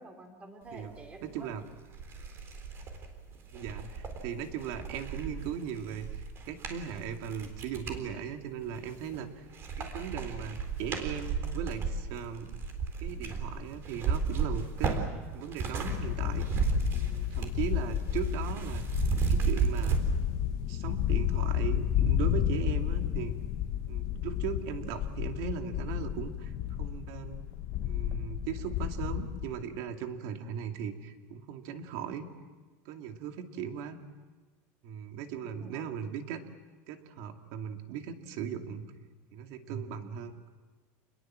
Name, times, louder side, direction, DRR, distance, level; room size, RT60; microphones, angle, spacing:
voice 1, 0.0-1.5 35.4-36.0, right 2 dB, 15° right, 5 dB, 3.8 m, -49 dB
voice 2, 1.2-1.6 3.5-9.4 9.8-12.6 13.0-15.1 15.3-18.8 19.3-20.0 20.7-23.3 23.9-26.5 26.8-27.4 27.8-32.3 32.9-34.0 34.8-36.4 36.9-38.9 39.3-40.3, right 8 dB, 60° right, 5 dB, 2.5 m, -38 dB
sound 1, 1.4-1.5 1.9-8.0 8.6-9.2 9.5-16.0 16.2-17.6 17.9-20.0, right 5 dB, 30° right, 3.9 m, -33 dB
sound 2, 15.9-29.5, left 11 dB, 50° left, 1.5 m, -32 dB
28.5 x 21.5 x 7.6 m, 1.3 s
cardioid pair, 160°, 8 cm